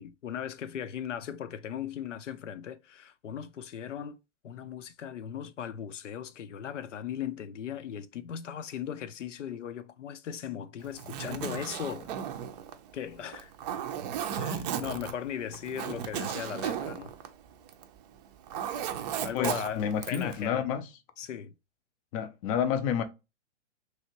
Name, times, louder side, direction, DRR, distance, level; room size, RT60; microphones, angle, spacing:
voice 1, 0.0-4.2 4.4-12.1 12.9-13.5 14.3-17.1 19.2-20.7 21.2-21.5, left 9 dB, 80° left, 0.6 m, -38 dB
Zipper (clothing), 10.8-18.0 18.2-20.4, right 8 dB, 35° right, 0.5 m, -35 dB
voice 2, 19.3-20.8 22.1-23.0, left 8 dB, 30° left, 0.4 m, -29 dB
3.0 x 2.7 x 2.8 m
hypercardioid pair, 120°, 36 cm